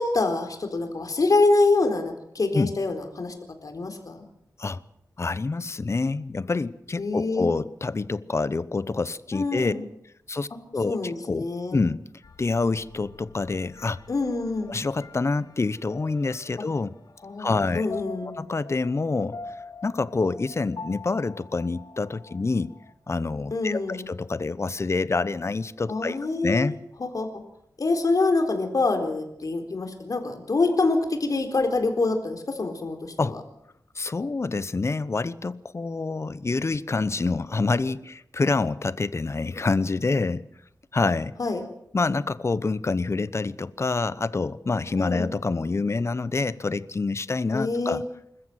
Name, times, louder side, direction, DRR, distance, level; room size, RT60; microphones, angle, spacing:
voice 1, 0.0-3.3 3.6-4.3 7.0-7.5 9.3-9.9 10.9-11.8 14.1-14.7 17.2-18.3 23.5-24.1 25.9-26.7 27.0-27.3 27.8-33.4 41.4-41.6 45.0-45.3 47.5-48.0, left 3 dB, 60° left, 4.1 m, -25 dB
voice 2, 5.2-9.7 10.3-10.5 10.7-12.0 12.4-14.0 14.7-16.9 17.4-17.9 18.4-19.4 19.8-22.7 23.1-26.2 26.4-26.8 33.2-33.3 34.0-40.4 40.9-41.3 41.9-48.0, left 3 dB, 40° left, 0.9 m, -27 dB
sound 1, 12.2-22.9, left 4 dB, 75° left, 4.0 m, -45 dB
27.0 x 14.0 x 8.0 m
wide cardioid pair, 105°, 7 cm